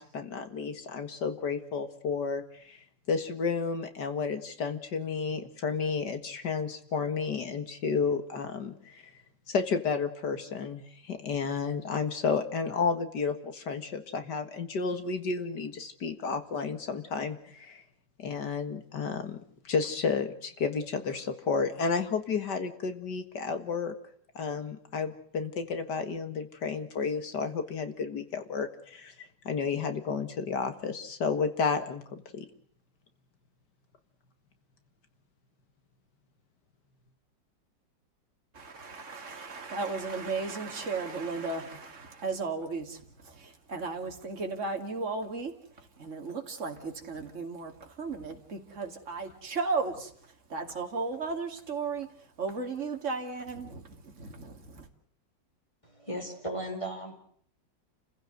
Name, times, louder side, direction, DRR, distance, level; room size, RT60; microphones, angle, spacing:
voice 1, 0.0-9.0 9.5-17.8 18.2-19.4 19.6-24.0 24.4-32.5, left 5 dB, 65° left, 2.3 m, -32 dB
voice 2, 38.5-45.5 45.8-50.1 50.5-52.1 52.4-54.9, right 4 dB, 40° right, 2.8 m, -35 dB
voice 3, 55.8-57.2, right 1 dB, 15° left, 5.1 m, -36 dB
29.5 x 16.0 x 7.9 m
omnidirectional pair, 2.0 m